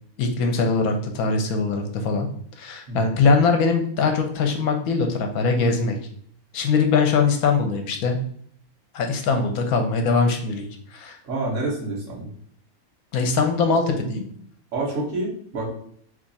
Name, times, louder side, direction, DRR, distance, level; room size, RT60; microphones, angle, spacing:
voice 1, 0.2-2.3 2.6-6.0 6.5-8.2 8.9-10.6 10.9-11.2 13.1-14.3, left 4 dB, 80° left, 4 dB, 1.1 m, -21 dB
voice 2, 11.2-12.3 14.7-15.7, right 2 dB, 60° right, -2 dB, 1.3 m, -28 dB
3.1 x 2.4 x 3.9 m, 0.63 s
omnidirectional pair, 1.6 m